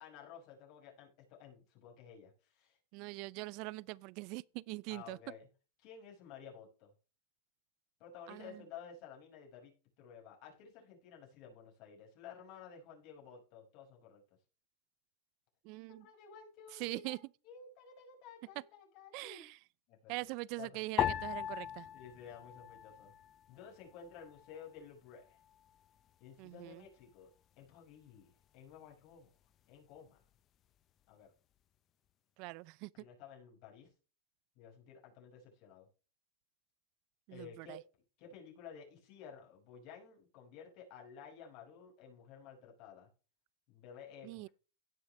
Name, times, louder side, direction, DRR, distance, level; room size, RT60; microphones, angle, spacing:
voice 1, 0.0-2.8 4.9-5.5 5.8-6.9 8.0-14.2 16.0-17.2 17.4-19.5 19.9-20.3 20.6-20.8 21.9-23.1 23.5-25.4 26.2-27.3 27.6-29.3 29.7-30.2 31.1-31.3 32.9-33.9 34.6-35.9 37.3-37.8 38.2-43.1 43.7-44.5, left 7 dB, 50° left, 5.7 m, -53 dB
voice 2, 2.9-5.2 8.3-8.6 15.6-16.1 16.7-17.2 19.1-19.6 20.1-21.9 26.4-26.8 32.4-33.1 37.3-37.8 44.2-44.5, right 22 dB, 50° right, 0.5 m, -43 dB
sound 1, 21.0-23.5 23.8-24.7 25.3-25.7, left 11 dB, 35° left, 0.6 m, -39 dB
17.0 x 6.2 x 3.3 m
supercardioid pair, 125°, 0 cm